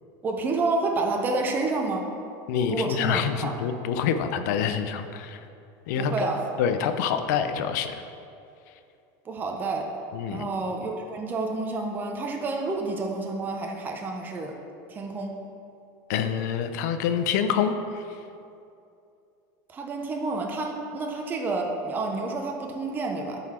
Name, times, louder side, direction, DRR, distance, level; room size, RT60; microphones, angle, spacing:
voice 1, 0.2-2.1 2.7-3.5 6.0-6.4 9.2-9.9 10.3-14.6 14.9-15.3 19.7-23.4, right 3 dB, 20° right, 1 dB, 0.6 m, -29 dB
voice 2, 2.5-5.4 5.9-6.3 6.6-8.0 10.1-10.5 16.1-18.0, left 7 dB, 75° left, 8 dB, 0.6 m, -26 dB
10.5 x 4.1 x 4.3 m, 2.6 s
supercardioid pair, 150°, 9 cm